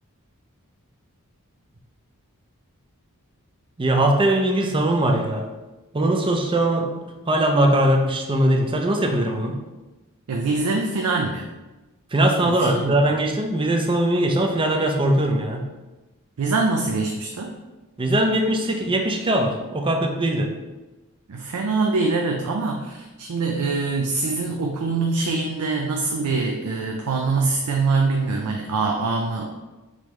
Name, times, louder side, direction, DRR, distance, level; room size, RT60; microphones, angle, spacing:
voice 1, 3.8-5.5 5.9-9.6 12.1-15.7 18.0-20.5, right 1 dB, 25° right, 3 dB, 0.5 m, -21 dB
voice 2, 10.3-11.5 12.5-13.0 16.4-17.5 21.3-29.6, right 3 dB, 80° right, 1 dB, 0.5 m, -24 dB
5.3 x 3.2 x 3.1 m, 1.1 s
head